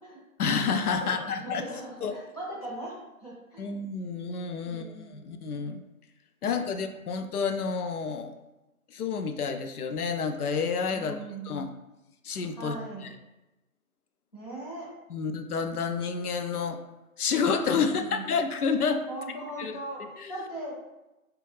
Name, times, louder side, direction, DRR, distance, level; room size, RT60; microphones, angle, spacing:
voice 1, 0.4-1.6 2.0-2.1 3.6-5.8 6.4-8.4 8.9-11.1 11.4-11.7 12.2-12.8 13.0-13.1 15.1-16.8 17.2-19.0 19.6-19.7 20.2-20.3, left 5 dB, 85° left, 7 dB, 0.5 m, -29 dB
voice 2, 1.0-3.9 4.6-5.3 6.4-6.5 10.9-11.5 12.6-13.1 14.3-14.9 17.8-18.3 19.1-20.7, right 1 dB, 30° left, -5 dB, 0.6 m, -40 dB
3.0 x 2.3 x 3.2 m, 0.98 s
figure-of-eight pair, 160°, 44 cm